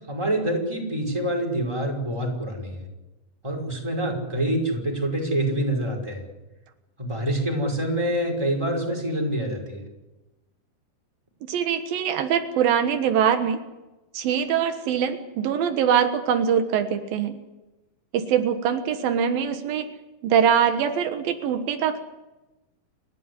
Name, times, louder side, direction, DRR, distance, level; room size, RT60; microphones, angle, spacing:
voice 1, 0.1-2.8 3.4-6.2 7.0-9.8, right 1 dB, 5° right, 0 dB, 5.2 m, -26 dB
voice 2, 11.4-13.6 14.1-17.3 18.1-19.9 20.2-22.0, right 8 dB, 85° right, 7 dB, 3.2 m, -23 dB
29.5 x 12.5 x 9.7 m, 1.1 s
omnidirectional pair, 4.0 m